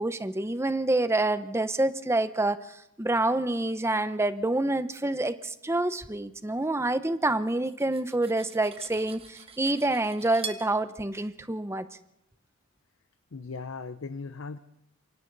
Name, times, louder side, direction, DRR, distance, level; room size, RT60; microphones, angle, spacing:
voice 1, 0.0-2.6 3.0-11.9, right 2 dB, 15° right, 12 dB, 0.8 m, -27 dB
Cutlery silverware, 7.5-10.7, right 5 dB, 30° right, 1.3 m, -43 dB
voice 2, 13.3-14.6, left 4 dB, 85° left, 11 dB, 0.7 m, -38 dB
28.0 x 24.5 x 4.0 m, 0.79 s
head